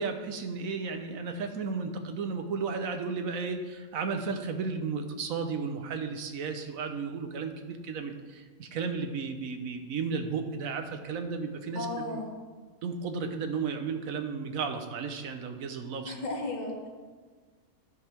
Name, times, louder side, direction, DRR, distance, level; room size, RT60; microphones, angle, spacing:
voice 1, 0.0-12.2 12.8-16.1, right 5 dB, 70° right, 6 dB, 1.2 m, -34 dB
voice 2, 11.7-12.3 16.0-16.9, left 2 dB, 30° left, -1 dB, 1.6 m, -34 dB
12.0 x 5.4 x 4.5 m, 1.4 s
omnidirectional pair, 1.5 m